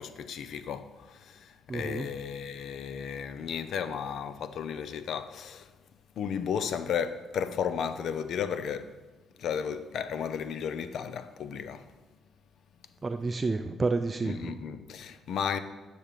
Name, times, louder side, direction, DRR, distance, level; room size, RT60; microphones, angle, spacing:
voice 1, 0.0-5.7 6.2-8.9 9.4-11.9 14.2-15.6, left 7 dB, 70° left, 0.6 m, -34 dB
voice 2, 1.7-2.1 13.0-14.6, right 3 dB, 30° right, 0.4 m, -30 dB
10.0 x 6.2 x 5.2 m
cardioid pair, 90°, 0 cm